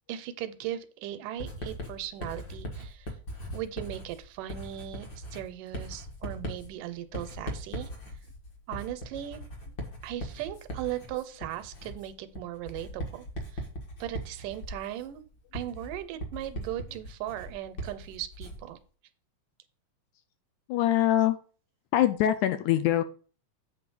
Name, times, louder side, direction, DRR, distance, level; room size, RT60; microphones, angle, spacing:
voice 1, 0.1-3.2 3.5-7.9 8.7-9.4 10.0-13.3 13.5-13.6 14.0-15.2 15.5-18.8, right 12 dB, 85° right, 11 dB, 2.2 m, -38 dB
Writing, 1.4-18.7, equal, 45° left, 1.6 m, -40 dB
voice 2, 20.7-21.4 21.9-23.0, left 12 dB, 80° left, 10 dB, 1.9 m, -23 dB
7.7 x 3.9 x 6.1 m, 0.39 s
omnidirectional pair, 3.7 m